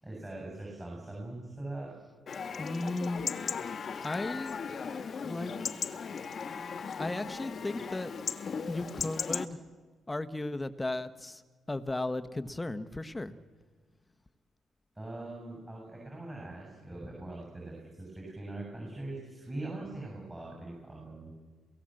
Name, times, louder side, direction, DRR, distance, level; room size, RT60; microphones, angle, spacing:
voice 1, 0.0-1.9 15.0-21.4, right 2 dB, 15° right, -1 dB, 7.3 m, -42 dB
Chatter / Livestock farm animals working animals / Chirp tweet, 2.3-9.5, left 6 dB, 50° left, 1.4 m, -37 dB
voice 2, 2.6-3.3 4.0-4.6 5.2-5.5 7.0-8.1 8.7-9.6 10.1-11.4 11.7-13.4, left 2 dB, 15° left, 11 dB, 1.2 m, -35 dB
29.0 x 17.0 x 7.8 m, 1.5 s
cardioid pair, 90°, 0 cm